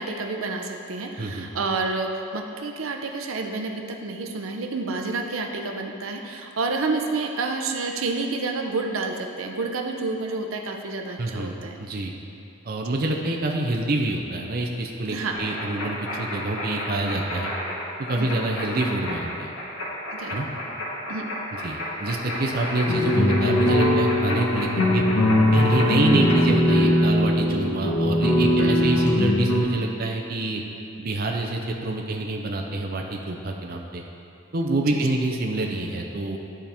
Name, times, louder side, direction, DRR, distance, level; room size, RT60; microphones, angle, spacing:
voice 1, 0.0-11.8 15.1-15.4 18.1-18.3 20.2-20.4 21.1-21.3 28.6-28.7 34.9-35.2, right 3 dB, 85° right, 3 dB, 0.7 m, -29 dB
voice 2, 11.2-11.5 11.8-12.1 12.6-17.5 18.0-19.5 20.3-20.5 21.6-25.0 25.5-30.6 31.0-34.0 34.5-36.4, right 2 dB, 45° right, 1 dB, 0.6 m, -26 dB
sound 1, 15.3-26.4, left 1 dB, 85° left, 1.6 m, -32 dB
sound 2, 22.9-29.6, left 1 dB, 70° left, 1.3 m, -20 dB
13.0 x 4.3 x 3.5 m, 2.6 s
head